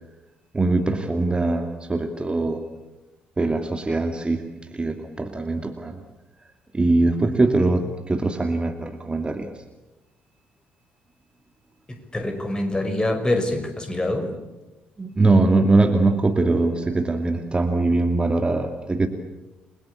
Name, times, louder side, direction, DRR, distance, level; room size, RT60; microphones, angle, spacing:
voice 1, 0.5-2.6 3.4-4.4 4.7-6.0 6.7-9.5 15.0-19.1, right 2 dB, 20° right, 6 dB, 2.4 m, -22 dB
voice 2, 12.1-14.4, left 1 dB, 20° left, 6 dB, 5.8 m, -25 dB
30.0 x 22.5 x 8.5 m, 1.0 s
figure-of-eight pair, 45°, 5 cm